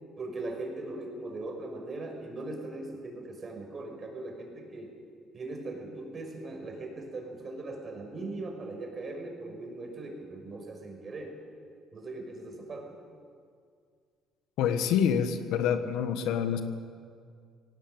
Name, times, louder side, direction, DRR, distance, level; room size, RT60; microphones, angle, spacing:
voice 1, 0.2-4.9 5.3-11.3 11.9-12.9, right 2 dB, 40° right, 2 dB, 5.8 m, -39 dB
voice 2, 14.6-16.6, left 8 dB, 80° left, 8 dB, 1.5 m, -27 dB
18.0 x 18.0 x 8.1 m, 2.2 s
supercardioid pair, 85°, 0 cm